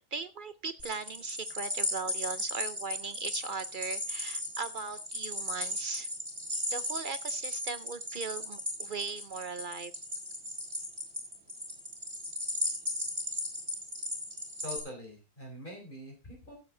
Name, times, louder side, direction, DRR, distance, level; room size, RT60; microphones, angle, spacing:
voice 1, 0.0-6.1 6.7-9.9, right 5 dB, 65° right, 12 dB, 0.5 m, -38 dB
sound 1, 0.8-14.8, left 1 dB, 35° right, 4.2 m, -36 dB
voice 2, 14.6-16.5, left 1 dB, 30° left, 1 dB, 4.0 m, -44 dB
15.5 x 7.8 x 3.8 m, 0.29 s
omnidirectional pair, 1.7 m